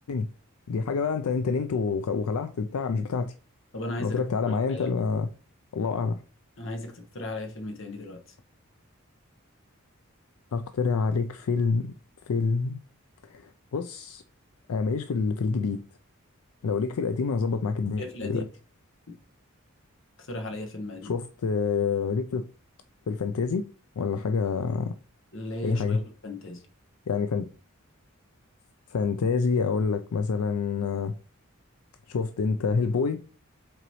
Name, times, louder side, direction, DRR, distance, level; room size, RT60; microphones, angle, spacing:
voice 1, 0.7-3.3 4.0-5.3 5.7-6.2 10.5-11.9 12.3-12.8 13.3-14.2 14.7-15.8 16.6-18.5 21.0-22.4 23.1-23.6 24.0-24.9 25.6-26.0 27.1-27.5 28.9-31.1 32.1-33.2, left 5 dB, 85° left, 0.4 m, -27 dB
voice 2, 3.7-4.2 4.5-4.9 6.6-8.2 18.0-18.5 19.1-19.2 20.3-21.1 25.3-26.6, left 1 dB, 60° left, 1.3 m, -36 dB
7.8 x 3.9 x 3.1 m
head